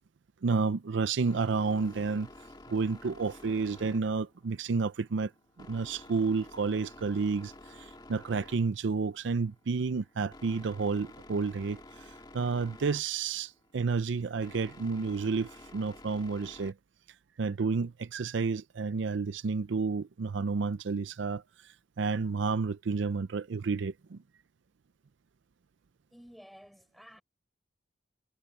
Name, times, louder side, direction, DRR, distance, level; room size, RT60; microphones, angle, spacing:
voice 1, 0.4-2.3 2.7-5.3 5.6-16.7 17.4-24.2, right 4 dB, 65° right, 0.5 m, -31 dB
sound 1, 1.3-16.7, left 2 dB, 20° left, 1.7 m, -52 dB
voice 2, 26.1-27.2, equal, ahead, 4.7 m, -53 dB
head